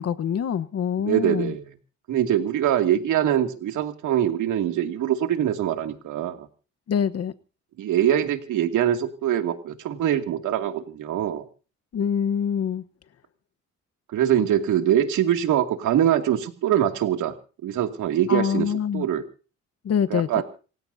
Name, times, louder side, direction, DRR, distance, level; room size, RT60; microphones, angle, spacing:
voice 1, 0.0-1.5 6.9-7.3 11.9-12.8 18.3-19.1 19.8-20.4, left 8 dB, 55° left, 1.2 m, -25 dB
voice 2, 1.1-1.7 2.1-6.5 7.8-11.4 14.1-17.3 17.6-18.7 18.9-19.2 20.1-20.4, right 10 dB, 80° right, 2.5 m, -23 dB
28.0 x 16.0 x 2.7 m
cardioid pair, 90°, 30 cm